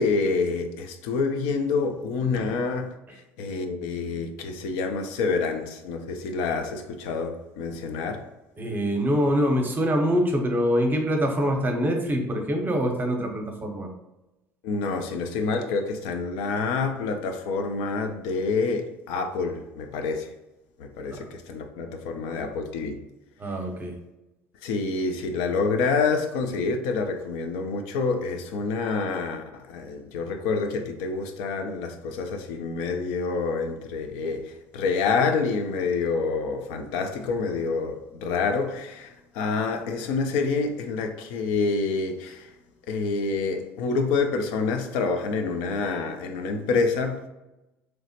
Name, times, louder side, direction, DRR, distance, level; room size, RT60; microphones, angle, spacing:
voice 1, 0.0-8.3 14.6-20.3 20.8-23.0 24.6-42.5 42.9-47.3, left 4 dB, 70° left, 0.4 m, -27 dB
voice 2, 8.6-13.9 21.2-21.3 23.4-23.9, equal, 25° right, 0.6 m, -24 dB
2.9 x 2.0 x 2.8 m
hypercardioid pair, 65°, 7 cm